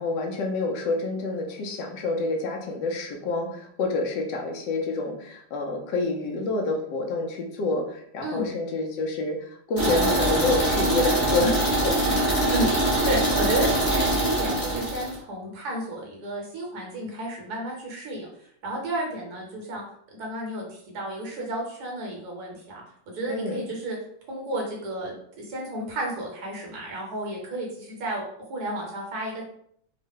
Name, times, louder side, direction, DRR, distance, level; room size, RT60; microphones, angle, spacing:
voice 1, 0.0-11.6 11.8-12.0 23.3-23.6, left 3 dB, 70° left, 2 dB, 1.1 m, -28 dB
sound 1, 9.8-15.2, right 1 dB, 50° left, 0.4 m, -23 dB
voice 2, 12.0-18.3 18.6-19.8 20.2-22.8 23.1-24.0 24.3-28.2 28.5-29.4, right 1 dB, 55° right, -1 dB, 1.2 m, -32 dB
3.6 x 2.1 x 3.6 m, 0.68 s
omnidirectional pair, 2.3 m